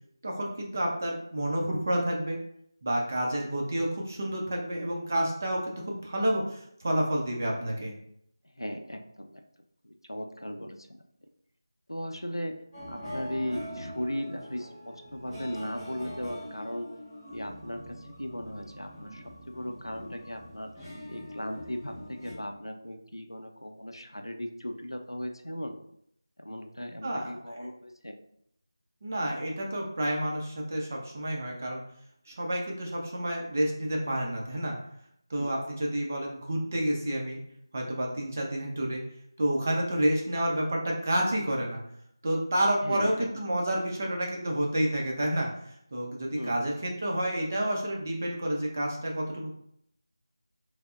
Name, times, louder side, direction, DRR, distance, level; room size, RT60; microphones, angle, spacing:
voice 1, 0.2-2.4 2.8-7.9 27.0-27.6 29.0-31.8 32.3-34.8 35.3-37.4 37.7-39.0 39.4-41.8 42.2-45.5 45.9-49.5, right 1 dB, 30° right, -1 dB, 0.5 m, -29 dB
voice 2, 8.6-9.4 9.8-11.0 11.9-12.5 12.9-16.9 17.3-20.7 21.1-25.8 26.4-28.2 35.4-35.5 42.8-43.3 46.4-46.5, equal, 90° left, 5 dB, 0.4 m, -37 dB
sound 1, 12.7-22.3, equal, ahead, 0.9 m, -43 dB
4.3 x 2.0 x 2.4 m, 0.71 s
figure-of-eight pair, 165°, 2 cm